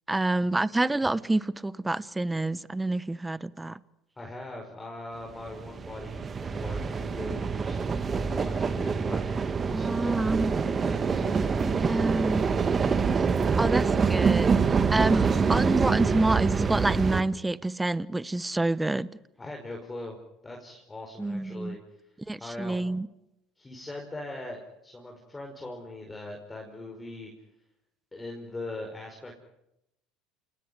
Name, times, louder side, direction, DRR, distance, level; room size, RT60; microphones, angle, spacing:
voice 1, 0.1-3.8 9.7-10.5 11.6-12.5 13.6-14.5 14.9-19.1 21.2-21.8 22.3-23.1, right 2 dB, 10° right, 18 dB, 1.0 m, -27 dB
voice 2, 4.2-12.9 19.4-20.2 20.4-21.8 22.4-22.9 23.6-27.3 28.1-29.3, left 2 dB, 15° left, 1 dB, 5.2 m, -41 dB
sound 1, 5.3-17.2, right 5 dB, 30° right, 1.6 m, -26 dB
28.5 x 19.0 x 9.6 m, 0.86 s
supercardioid pair, 90°, 0 cm